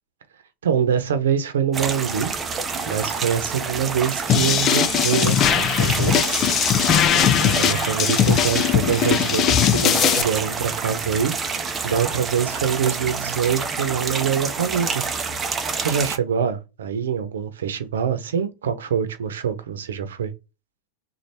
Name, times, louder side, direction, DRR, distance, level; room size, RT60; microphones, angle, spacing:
voice 1, 0.6-2.3 2.9-6.5 7.1-11.3 11.8-15.0 15.8-20.3, right 7 dB, 90° right, 0.8 m, -24 dB
sound 1, 1.7-16.2, right 5 dB, 20° right, 0.7 m, -28 dB
sound 2, 4.3-10.2, left 9 dB, 35° left, 0.5 m, -19 dB
3.3 x 2.4 x 4.2 m
supercardioid pair, 120°, 0 cm